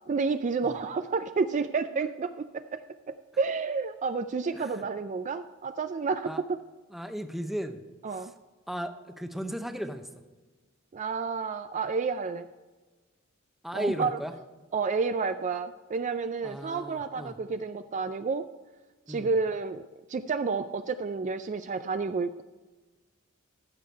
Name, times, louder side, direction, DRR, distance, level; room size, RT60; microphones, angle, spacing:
voice 1, 0.1-6.6 8.0-8.3 10.9-12.5 13.7-14.2 14.7-18.4 19.1-22.4, right 4 dB, 35° right, 10 dB, 0.4 m, -30 dB
voice 2, 6.9-7.8 8.1-8.3 8.7-10.0 13.6-14.3 16.4-17.4 19.1-19.3, equal, ahead, 7 dB, 0.7 m, -35 dB
14.5 x 6.7 x 4.5 m, 1.3 s
head